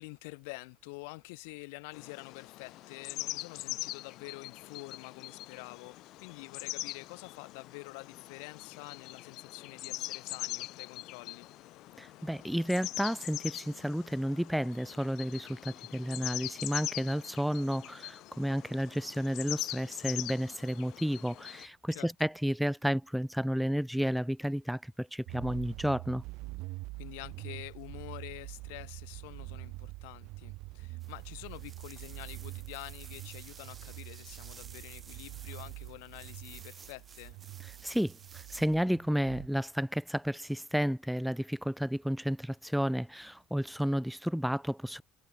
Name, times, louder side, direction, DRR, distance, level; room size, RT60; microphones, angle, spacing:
voice 1, 0.0-11.5 21.9-22.1 26.9-37.4, left 30 dB, 90° left, 4.7 m, -47 dB
sound 1, 1.9-21.7, left 17 dB, 65° left, 3.2 m, -42 dB
voice 2, 12.0-26.2 37.8-38.1 38.5-45.0, equal, ahead, 0.7 m, -32 dB
sound 2, 25.3-39.5, right 23 dB, 70° right, 0.9 m, -45 dB
sound 3, 31.0-38.6, right 6 dB, 30° right, 3.4 m, -54 dB
cardioid pair, 115°, 0 cm